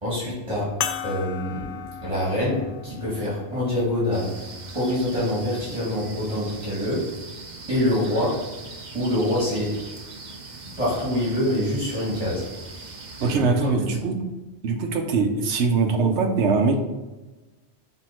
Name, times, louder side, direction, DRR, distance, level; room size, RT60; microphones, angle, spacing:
voice 1, 0.0-1.7 2.0-4.5 4.7-7.1 7.7-8.4 8.9-9.8 10.8-12.5 12.7-13.7, left 1 dB, 30° right, -8 dB, 2.1 m, -25 dB
sound 1, 0.8-5.6 6.4-6.5 8.6-8.7, left 8 dB, 60° left, 0.6 m, -36 dB
sound 2, 4.1-13.4, right 3 dB, 45° right, 0.8 m, -41 dB
voice 2, 13.2-14.2 14.6-16.8, right 4 dB, 80° right, 4 dB, 1.1 m, -22 dB
6.2 x 3.6 x 4.3 m, 1.1 s
omnidirectional pair, 1.1 m